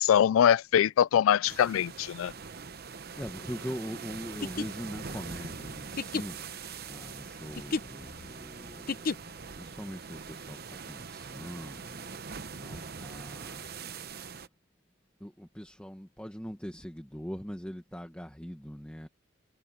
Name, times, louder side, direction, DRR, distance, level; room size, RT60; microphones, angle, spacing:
voice 1, 0.0-2.3, left 9 dB, 85° left, 0.3 m, -23 dB
sound 1, 1.4-14.5, right 5 dB, 50° right, 0.9 m, -43 dB
voice 2, 3.2-6.5 6.9-9.3 9.5-13.6 15.2-19.1, equal, 5° left, 1.5 m, -42 dB
sound 2, 4.3-9.5, left 4 dB, 45° left, 0.7 m, -35 dB
head